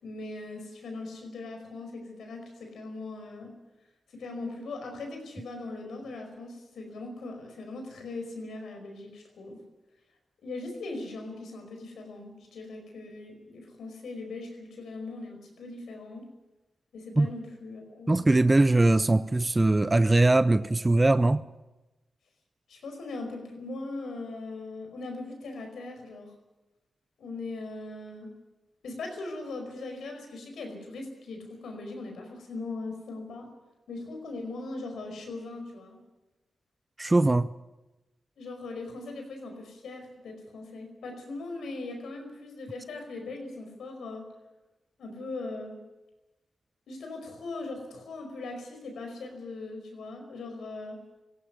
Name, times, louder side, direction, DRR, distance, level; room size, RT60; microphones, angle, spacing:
voice 1, 0.0-3.5 4.1-9.6 10.4-16.2 16.9-18.2 22.7-26.3 27.2-28.3 28.8-33.5 33.9-36.0 38.4-44.3 45.0-45.8 46.9-51.0, left 2 dB, 90° left, 5.0 m, -40 dB
voice 2, 18.1-21.4 37.0-37.5, right 2 dB, 25° right, 0.6 m, -21 dB
17.5 x 16.5 x 9.5 m
cardioid pair, 60°, 0 cm